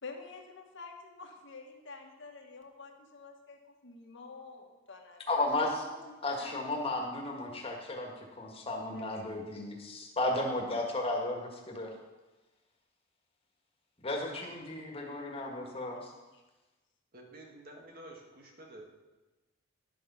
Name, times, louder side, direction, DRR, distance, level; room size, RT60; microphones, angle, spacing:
voice 1, 0.0-5.3 5.9-6.7 7.0-8.0 8.9-9.3 16.3-16.4, left 4 dB, 65° left, 2 dB, 1.5 m, -49 dB
voice 2, 5.3-5.8 6.2-11.9 14.0-16.1, left 2 dB, 30° left, 0 dB, 1.9 m, -34 dB
voice 3, 17.1-19.1, right 1 dB, 50° right, 1 dB, 1.7 m, -50 dB
11.0 x 7.0 x 5.6 m, 1.1 s
head